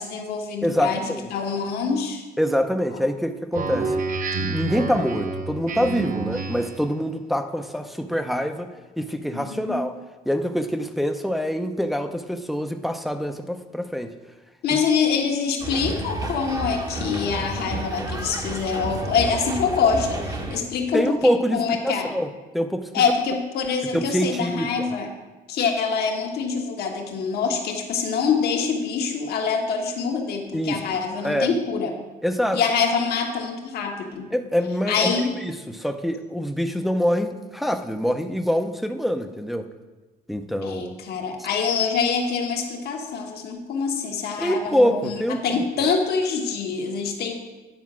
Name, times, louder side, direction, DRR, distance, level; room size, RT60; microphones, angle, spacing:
voice 1, 0.0-2.2 9.3-9.8 14.6-22.1 22.9-25.1 25.5-31.9 32.5-34.3 34.9-35.3 40.6-47.3, left 5 dB, 70° left, 2 dB, 1.4 m, -25 dB
voice 2, 0.6-1.2 2.4-4.1 4.4-8.7 9.0-9.9 10.3-14.1 20.9-22.9 23.9-24.9 30.5-30.8 31.2-31.5 32.2-32.6 34.3-35.1 35.4-39.7 40.3-41.0 44.4-45.6, equal, ahead, 6 dB, 0.6 m, -25 dB
Speech synthesizer, 3.5-6.9, right 3 dB, 55° right, 0.9 m, -28 dB
sound 1, 15.6-20.6, right 2 dB, 20° right, 0.9 m, -31 dB
9.4 x 4.7 x 6.1 m, 1.2 s
cardioid pair, 110°, 17 cm